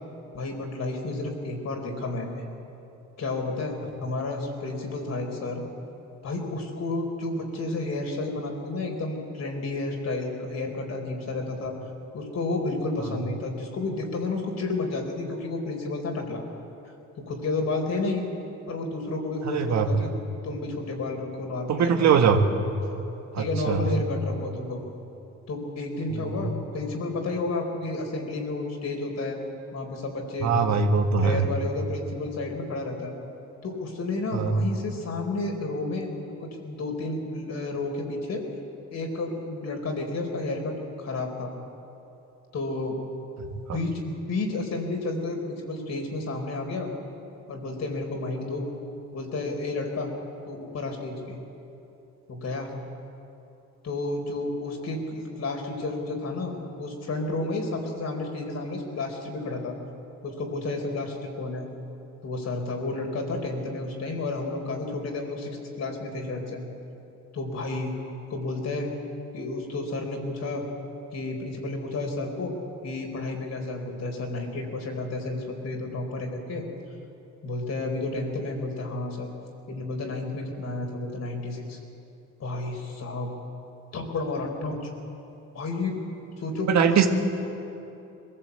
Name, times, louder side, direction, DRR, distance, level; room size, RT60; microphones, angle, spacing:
voice 1, 0.3-2.4 3.2-5.6 6.2-11.7 12.1-16.4 17.3-18.2 18.7-20.1 20.4-22.1 22.3-22.4 23.3-24.8 25.5-29.4 29.7-30.7 31.2-33.1 33.6-36.1 36.4-38.5 38.9-41.5 42.5-43.0 43.7-46.9 47.5-48.7 49.1-50.1 50.5-51.4 52.3-52.7 53.8-59.8 60.2-61.6 62.2-66.6 67.3-67.9 68.3-68.9 69.3-70.7 71.1-72.6 72.8-76.7 77.4-79.3 79.7-81.8 82.4-83.3 83.9-84.9 85.5-86.0 86.4-87.1, left 2 dB, 60° left, 2 dB, 4.1 m, -31 dB
voice 2, 19.5-20.0 21.7-22.4 23.3-23.9 30.4-31.4 34.3-34.6 86.7-87.1, right 6 dB, 65° right, 6 dB, 1.6 m, -21 dB
21.5 x 15.5 x 8.2 m, 2.9 s
cardioid pair, 90°, 30 cm